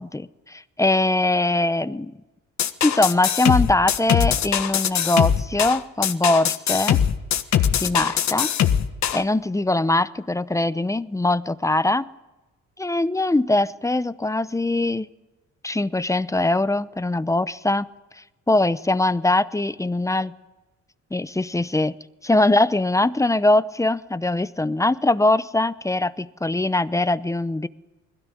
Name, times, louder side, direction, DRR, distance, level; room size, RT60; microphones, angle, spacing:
voice 1, 0.0-2.1 2.8-7.0 7.8-8.5 9.1-12.1 12.8-15.1 15.6-17.9 18.2-20.3 21.1-21.9 22.2-27.7, left 2 dB, 10° left, 15 dB, 0.8 m, -22 dB
sound 1, 2.6-9.2, left 9 dB, 65° left, 1.5 m, -21 dB
21.0 x 16.0 x 10.0 m, 1.1 s
cardioid pair, 90°, 30 cm